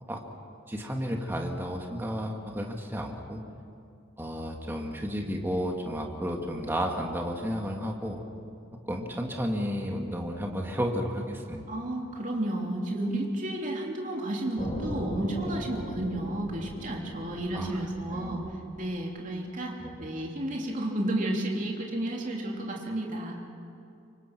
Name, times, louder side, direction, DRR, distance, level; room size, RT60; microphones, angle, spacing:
voice 1, 0.7-3.4 4.2-8.2 8.8-11.7 17.5-17.8 18.1-18.4 19.8-20.1, equal, 10° right, 1 dB, 2.0 m, -32 dB
voice 2, 11.7-18.4 18.7-23.4, right 1 dB, 40° right, 0 dB, 3.1 m, -32 dB
sound 1, 14.6-19.4, equal, 35° left, 2.1 m, -39 dB
25.5 x 24.0 x 6.1 m, 2.5 s
head